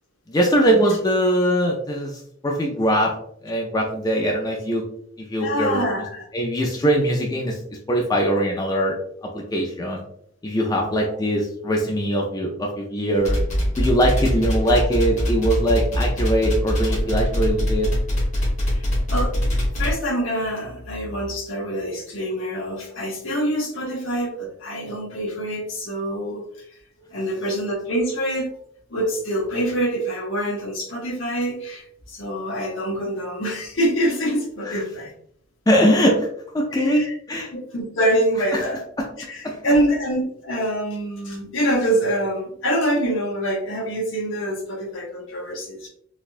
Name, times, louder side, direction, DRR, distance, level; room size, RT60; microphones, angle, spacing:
voice 1, 0.3-3.1 3.4-4.8 5.2-5.8 6.3-7.6 7.9-8.9 9.3-10.0 10.4-13.4 13.8-17.9 34.7-34.8 35.7-36.3 36.5-37.5 38.5-38.6 39.0-39.1 39.4-39.6, equal, 20° left, -1 dB, 0.4 m, -21 dB
voice 2, 5.4-6.2 14.7-14.8 18.7-19.3 19.7-26.4 27.1-28.5 28.9-35.1 36.7-37.1 37.5-38.8 39.3-45.9, equal, 65° left, -1 dB, 1.0 m, -25 dB
sound 1, 13.2-19.9, equal, 35° left, 1.4 m, -22 dB
4.1 x 2.1 x 2.5 m, 0.66 s
head